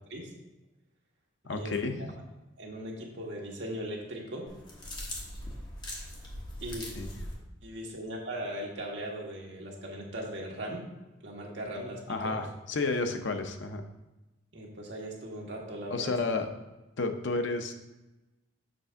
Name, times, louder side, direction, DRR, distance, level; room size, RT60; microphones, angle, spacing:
voice 1, 1.4-2.2 6.9-7.3 12.1-13.8 15.9-16.5 17.0-17.7, left 3 dB, 75° left, 6 dB, 0.6 m, -31 dB
voice 2, 2.6-4.4 6.6-6.9 7.6-10.8 11.2-12.3 14.5-16.1, right 1 dB, 65° right, -1 dB, 1.4 m, -38 dB
sound 1, 4.5-7.4, left 1 dB, 25° left, 1.2 m, -40 dB
6.7 x 3.4 x 5.6 m, 1.0 s
head